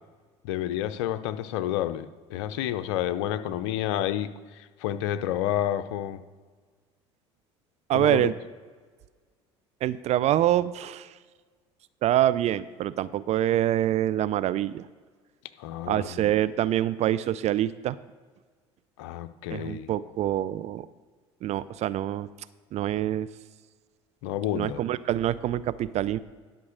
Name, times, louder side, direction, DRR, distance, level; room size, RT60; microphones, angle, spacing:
voice 1, 0.4-6.2 7.9-8.3 15.6-16.3 19.0-19.9 24.2-24.8, left 12 dB, 70° left, 12 dB, 0.6 m, -30 dB
voice 2, 7.9-8.3 9.8-11.1 12.0-14.8 15.9-18.0 19.5-20.9 21.4-22.3 22.7-23.3 24.5-26.2, right 12 dB, 50° right, 16 dB, 0.4 m, -25 dB
11.5 x 5.2 x 6.5 m, 1.5 s
hypercardioid pair, 70°, 15 cm